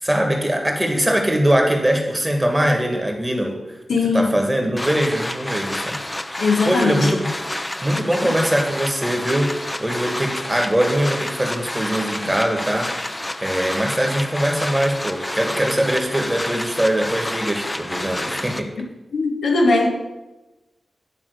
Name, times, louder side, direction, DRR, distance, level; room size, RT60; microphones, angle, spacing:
voice 1, 0.0-3.6 3.9-6.0 6.6-7.3 7.8-12.9 13.4-18.7, right 1 dB, 15° right, 2 dB, 1.7 m, -21 dB
voice 2, 3.9-4.3 6.4-7.1 8.2-8.4 19.1-19.9, left 3 dB, 85° left, 1 dB, 1.2 m, -19 dB
sound 1, 4.8-18.6, left 1 dB, 20° left, 0.6 m, -29 dB
9.9 x 3.5 x 6.6 m, 1.1 s
cardioid pair, 45°, 0 cm